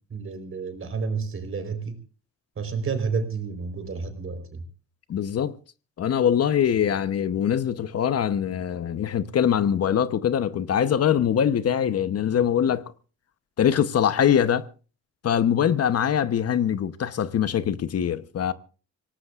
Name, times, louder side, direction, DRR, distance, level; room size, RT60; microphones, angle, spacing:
voice 1, 0.0-2.0 2.6-4.6, right 5 dB, 45° right, 4.1 m, -30 dB
voice 2, 5.1-5.5 6.0-12.9 13.6-14.7 15.2-18.5, left 9 dB, 55° left, 0.9 m, -23 dB
26.0 x 18.0 x 2.5 m
cardioid pair, 90°, 30 cm